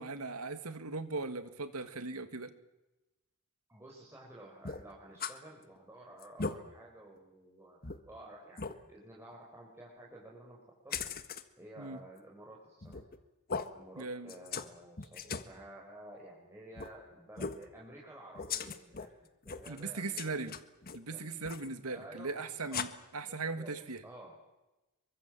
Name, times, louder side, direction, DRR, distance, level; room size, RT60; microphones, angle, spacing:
voice 1, 0.0-2.5 11.8-12.0 14.0-14.3 19.7-20.6 20.9-24.0, right 3 dB, 90° right, 10 dB, 2.1 m, -39 dB
voice 2, 3.7-11.1 11.6-13.0 13.7-19.1 19.4-20.5 21.1-21.2 21.9-22.8 23.2-23.7 24.0-24.4, right 1 dB, 10° right, -3 dB, 5.0 m, -52 dB
sound 1, 4.6-5.4 5.8-5.9 6.2-6.6 7.2-7.3 7.8-8.0 8.6-8.8 10.9-11.4 12.8-13.2 13.5-13.7 14.3-14.7 15.0-15.5 16.7-16.9 17.4-17.6 18.3-19.1 19.4-19.8 20.2-21.0 21.4-21.7 22.7-22.8, left 5 dB, 45° left, 1.6 m, -38 dB
27.5 x 24.0 x 7.7 m, 1.0 s
head